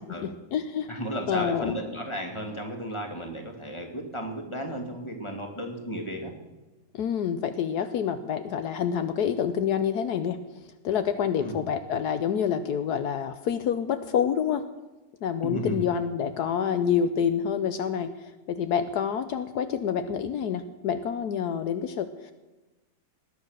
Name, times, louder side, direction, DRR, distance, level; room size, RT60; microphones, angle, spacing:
voice 1, 0.2-0.9 1.3-1.7 6.9-10.4 10.8-14.6 15.2-22.3, left 8 dB, 75° left, 10 dB, 1.3 m, -27 dB
voice 2, 0.9-6.3 11.4-11.6 15.4-15.9, equal, 15° left, 3 dB, 2.4 m, -34 dB
19.5 x 9.8 x 6.6 m, 1.1 s
omnidirectional pair, 1.8 m